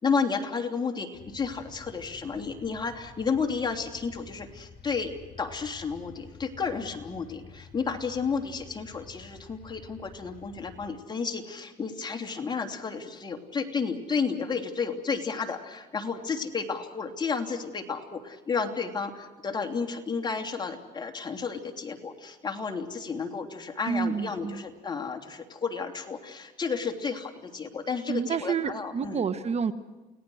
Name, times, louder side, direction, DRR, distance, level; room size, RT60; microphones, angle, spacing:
voice 1, 0.0-5.1 5.4-29.2, left 5 dB, 25° left, 4 dB, 3.0 m, -32 dB
sound 1, 1.1-10.9, left 5 dB, 50° left, 6.5 m, -50 dB
voice 2, 23.9-24.6 28.1-29.7, right 6 dB, 40° right, 13 dB, 1.2 m, -29 dB
30.0 x 18.5 x 6.4 m, 1.2 s
cardioid pair, 110°, 17 cm